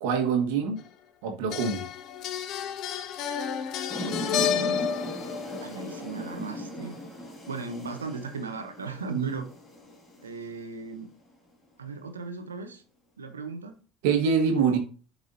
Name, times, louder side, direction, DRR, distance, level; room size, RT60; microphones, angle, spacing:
voice 1, 0.0-0.8 1.2-1.8 9.1-9.4 14.0-14.8, right 6 dB, 65° right, 1.6 m, -25 dB
sound 1, 0.8-0.9 1.5-6.0, left 8 dB, 50° left, 0.6 m, -31 dB
sound 2, 3.9-10.8, equal, 25° left, 2.4 m, -38 dB
voice 2, 4.0-4.9 5.6-7.0 7.5-9.5 10.2-11.1 11.8-12.8 13.2-13.8 14.5-14.8, right 3 dB, 85° right, 1.1 m, -37 dB
12.5 x 4.8 x 2.8 m
figure-of-eight pair, 70°, 0 cm